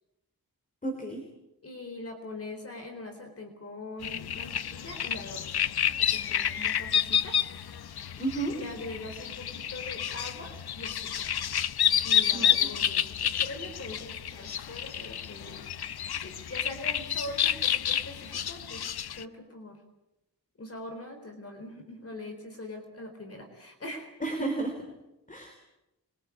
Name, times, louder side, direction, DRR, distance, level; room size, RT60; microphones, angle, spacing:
voice 1, 0.8-1.2 8.2-8.5 12.3-12.7 24.2-24.7 25.3-25.5, right 2 dB, 20° left, 4 dB, 3.5 m, -32 dB
voice 2, 1.6-5.6 6.0-7.4 8.5-11.3 12.0-15.7 16.2-18.8 19.2-19.8 20.6-24.1, left 2 dB, 40° left, 5 dB, 4.1 m, -42 dB
sound 1, 4.0-19.2, left 9 dB, 75° left, 0.9 m, -29 dB
26.5 x 23.5 x 8.4 m, 0.95 s
wide cardioid pair, 170°, 38 cm